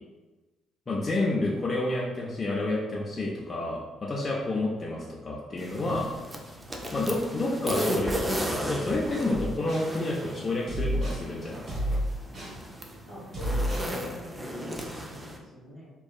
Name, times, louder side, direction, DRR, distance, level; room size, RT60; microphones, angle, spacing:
voice 1, 0.9-6.1 6.9-11.6, left 2 dB, 35° left, -4 dB, 0.5 m, -29 dB
sound 1, 5.6-15.4, equal, 20° right, 0.4 m, -35 dB
sound 2, 9.3-9.9 10.7-11.3 11.7-12.6 13.3-13.9, equal, 55° right, 1.3 m, -30 dB
voice 2, 13.1-15.9, left 2 dB, 75° right, -11 dB, 1.1 m, -43 dB
2.7 x 2.3 x 2.3 m, 1.2 s
supercardioid pair, 60°, 0 cm